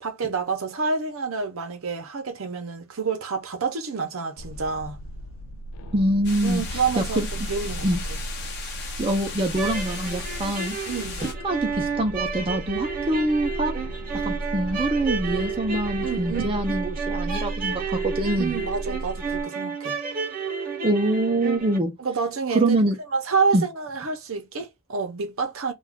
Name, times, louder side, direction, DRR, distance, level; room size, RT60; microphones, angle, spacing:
voice 1, 0.0-5.0 6.4-8.2 10.9-11.2 16.0-16.6 18.4-20.0 22.0-22.8 23.1-25.7, right 5 dB, 70° right, 0.7 m, -28 dB
sound 1, 4.4-19.4, right 1 dB, 90° left, 0.4 m, -35 dB
voice 2, 5.9-7.3 7.8-8.0 9.0-10.8 11.2-13.7 14.3-18.6 20.8-21.9 22.5-23.0 23.5-23.6, right 1 dB, 25° right, 0.4 m, -25 dB
sound 2, 6.2-11.3, left 5 dB, 50° left, 0.7 m, -37 dB
sound 3, 9.5-21.8, right 5 dB, 40° right, 0.8 m, -31 dB
2.3 x 2.2 x 3.4 m
head